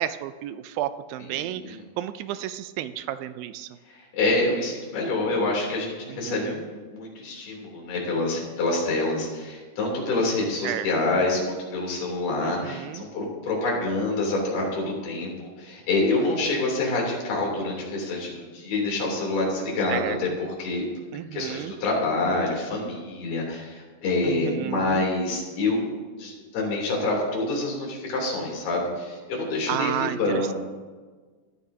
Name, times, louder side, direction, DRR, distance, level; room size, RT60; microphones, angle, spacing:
voice 1, 0.0-3.7 6.1-6.6 10.6-10.9 12.4-13.0 19.9-20.2 21.1-21.7 24.2-25.0 29.7-30.4, right 12 dB, 80° right, 12 dB, 2.2 m, -32 dB
voice 2, 1.2-1.8 3.9-20.3 20.6-20.9 21.3-25.9 26.2-30.6, left 2 dB, 85° left, -2 dB, 5.2 m, -27 dB
20.5 x 14.0 x 2.8 m, 1.4 s
omnidirectional pair, 4.3 m